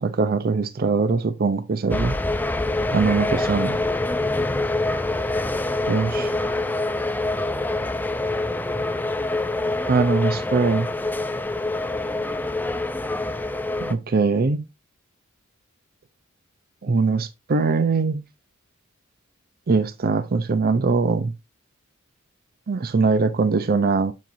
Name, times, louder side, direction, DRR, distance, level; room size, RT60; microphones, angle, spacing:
voice 1, 0.0-2.2 2.9-3.8 5.9-6.3 9.9-10.9 13.8-14.6 16.8-18.2 19.7-21.3 22.7-24.1, right 4 dB, 45° right, 0.5 m, -21 dB
sound 1, 1.9-13.9, left 2 dB, 10° left, 0.4 m, -25 dB
7.3 x 5.8 x 2.6 m
head